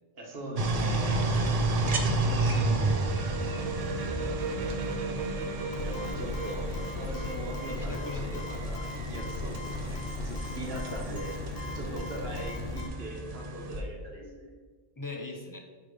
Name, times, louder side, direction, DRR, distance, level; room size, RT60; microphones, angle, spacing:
voice 1, 0.1-1.3 2.2-3.1 5.8-6.7 7.0-10.0 10.2-11.4 11.7-14.5, right 1 dB, 60° right, 0 dB, 1.5 m, -41 dB
sound 1, 0.6-13.8, right 2 dB, 40° right, 0.6 m, -32 dB
sound 2, 1.6-8.8, right 4 dB, 85° right, 0.9 m, -38 dB
voice 2, 3.0-5.0 7.7-8.6 15.0-15.6, left 3 dB, 20° left, 2 dB, 0.7 m, -43 dB
sound 3, 5.7-12.9, left 2 dB, 80° left, 1.1 m, -37 dB
5.5 x 4.9 x 5.1 m, 1.4 s
omnidirectional pair, 1.1 m